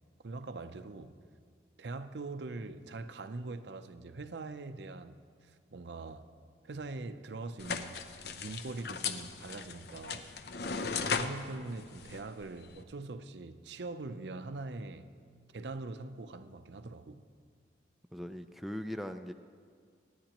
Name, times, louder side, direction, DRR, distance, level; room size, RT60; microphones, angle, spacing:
voice 1, 0.2-1.2 1.8-6.3 6.6-10.3 11.1-15.1 15.5-17.2, right 3 dB, 75° right, 0.6 m, -43 dB
sound 1, 7.6-12.8, left 5 dB, 65° left, 0.6 m, -38 dB
voice 2, 18.1-19.3, equal, ahead, 0.3 m, -39 dB
25.5 x 9.7 x 3.0 m
head